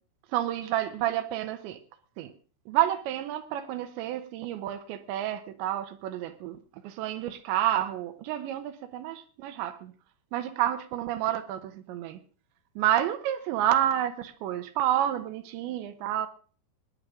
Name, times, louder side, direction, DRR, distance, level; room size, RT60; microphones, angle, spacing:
voice 1, 0.3-1.8 2.2-2.3 2.7-6.6 6.8-9.9 10.3-12.2 12.8-16.3, right 12 dB, 90° right, 9 dB, 3.3 m, -29 dB
24.0 x 10.0 x 3.7 m, 0.40 s
omnidirectional pair, 5.0 m